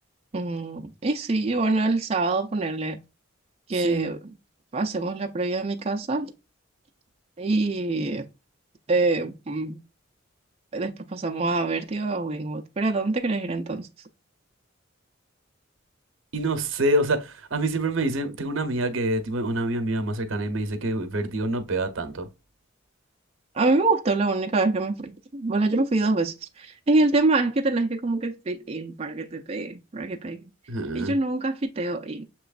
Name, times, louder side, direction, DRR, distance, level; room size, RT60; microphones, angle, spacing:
voice 1, 0.3-3.0 3.7-4.3 4.7-6.3 7.4-8.3 8.9-9.8 10.7-13.9 23.5-30.5 30.9-32.2, right 3 dB, 30° right, 0.5 m, -25 dB
voice 2, 3.7-4.1 16.3-22.3 30.7-31.1, right 1 dB, 75° right, 0.8 m, -26 dB
6.7 x 3.0 x 2.4 m
head